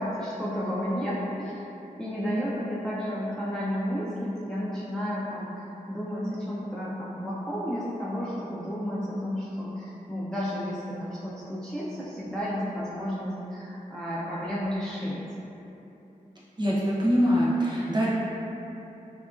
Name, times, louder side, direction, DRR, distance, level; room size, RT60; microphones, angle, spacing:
voice 1, 0.0-1.6 2.0-15.2, equal, 5° left, -8 dB, 0.3 m, -32 dB
voice 2, 16.6-18.1, equal, 30° right, -8 dB, 0.6 m, -23 dB
2.7 x 2.4 x 2.3 m, 3.0 s
wide cardioid pair, 95°, 14 cm